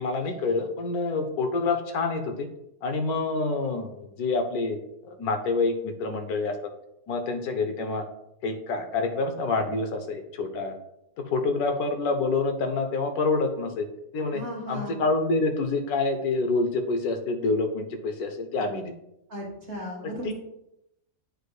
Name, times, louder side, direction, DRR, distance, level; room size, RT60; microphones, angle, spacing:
voice 1, 0.0-2.5 2.8-6.6 7.1-8.0 8.4-10.7 11.2-13.9 14.1-18.9 20.0-20.3, left 3 dB, 90° left, 7 dB, 1.3 m, -27 dB
voice 2, 14.3-15.0 19.3-20.3, equal, 45° right, -2 dB, 1.8 m, -35 dB
9.3 x 4.7 x 2.3 m, 0.84 s
omnidirectional pair, 1.6 m